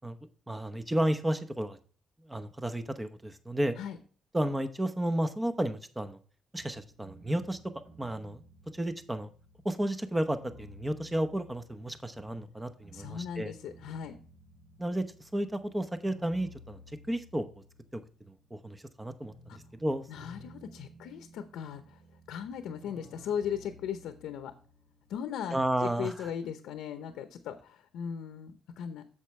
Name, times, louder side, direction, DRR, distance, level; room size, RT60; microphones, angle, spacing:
voice 1, 0.5-1.8 2.2-3.7 4.3-6.2 6.5-7.6 8.0-8.4 8.7-9.3 9.6-13.5 14.8-16.8 17.1-17.5 17.9-18.0 18.3-20.0 25.5-26.1, right 1 dB, 10° right, 9 dB, 0.8 m, -32 dB
sound 1, 6.6-18.6 18.9-25.3, left 1 dB, 35° right, 3.6 m, -55 dB
voice 2, 12.9-14.2 19.5-19.6 20.1-22.0 22.3-24.5 25.1-29.0, left 8 dB, 85° left, 9 dB, 0.7 m, -38 dB
8.3 x 7.0 x 3.2 m, 0.42 s
cardioid pair, 90°, 0 cm